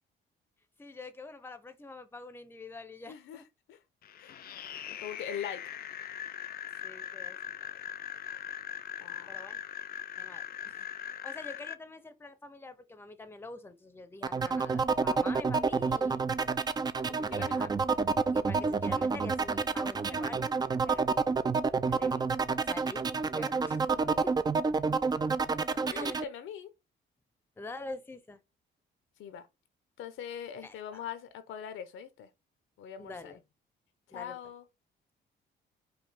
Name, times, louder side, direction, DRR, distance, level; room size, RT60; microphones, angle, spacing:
voice 1, 0.8-3.4 6.8-7.8 9.3-9.6 10.2-16.2 17.3-17.7 18.3-20.5 20.9-21.0 21.9-22.3 22.6-23.1 23.3-24.4 25.9-26.3 27.6-28.4 30.6-31.0 33.0-33.4 34.1-34.4, left 3 dB, 10° left, 0.6 m, -46 dB
voice 2, 3.1-3.4 3.7-3.8 4.2-4.4 4.9-5.6 9.0-9.4 17.1-17.7 23.9-24.0 25.7-26.7 29.2-29.5 30.0-32.3 32.8-33.3 34.1-34.7, left 9 dB, 85° left, 0.8 m, -42 dB
sound 1, 4.0-11.7, left 9 dB, 50° left, 0.4 m, -41 dB
sound 2, 14.2-26.2, right 4 dB, 20° right, 0.3 m, -29 dB
5.1 x 2.4 x 3.5 m
cardioid pair, 90°, 20 cm